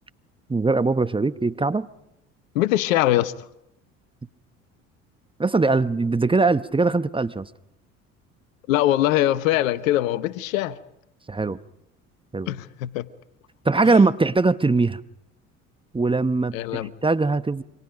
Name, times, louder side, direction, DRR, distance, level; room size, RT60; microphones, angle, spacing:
voice 1, 0.5-1.9 5.4-7.5 11.3-11.6 12.3-12.5 13.6-15.0 15.9-17.6, right 3 dB, 15° right, 0.9 m, -21 dB
voice 2, 2.5-3.3 8.7-10.8 12.5-13.1 13.8-14.0 16.5-16.9, left 14 dB, 75° left, 1.1 m, -22 dB
29.0 x 25.0 x 5.1 m
hypercardioid pair, 65°, 40 cm